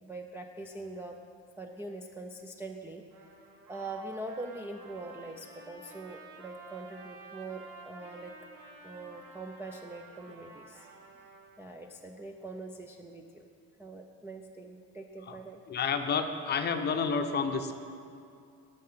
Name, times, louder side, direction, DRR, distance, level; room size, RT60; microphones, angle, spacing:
voice 1, 0.0-1.2 1.6-3.0 3.7-8.3 8.8-10.9 11.6-13.5 13.8-15.6, right 2 dB, 10° right, 0 dB, 0.3 m, -43 dB
Trumpet, 3.1-11.5, right 4 dB, 65° right, 3.3 m, -51 dB
voice 2, 15.7-17.7, left 5 dB, 30° left, 7 dB, 0.7 m, -30 dB
18.5 x 6.6 x 5.7 m, 2.4 s
cardioid pair, 170°, 33 cm